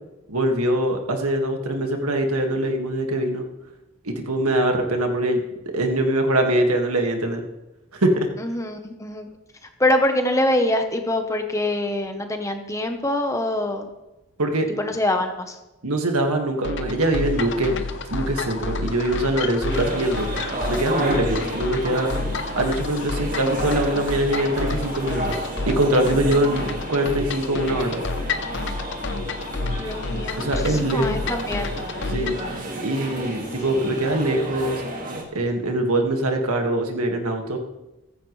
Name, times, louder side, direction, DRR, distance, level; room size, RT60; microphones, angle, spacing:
voice 1, 0.3-3.4 4.0-5.4 5.7-7.4 7.9-8.3 14.4-14.7 15.8-17.8 18.1-20.3 20.7-22.1 22.6-28.0 30.4-31.1 32.1-32.4 32.8-34.8 35.3-37.6, right 1 dB, 85° right, 3 dB, 2.0 m, -23 dB
voice 2, 8.4-9.3 9.6-13.9 14.8-15.6 29.8-31.7 33.3-33.6, left 1 dB, 15° left, 5 dB, 1.0 m, -24 dB
sound 1, 16.6-32.5, left 3 dB, 55° left, 0.8 m, -30 dB
sound 2, 17.1-34.3, left 1 dB, 35° left, 4.7 m, -45 dB
sound 3, 19.7-35.2, right 1 dB, 40° right, 2.1 m, -31 dB
14.5 x 14.5 x 3.3 m, 1.0 s
head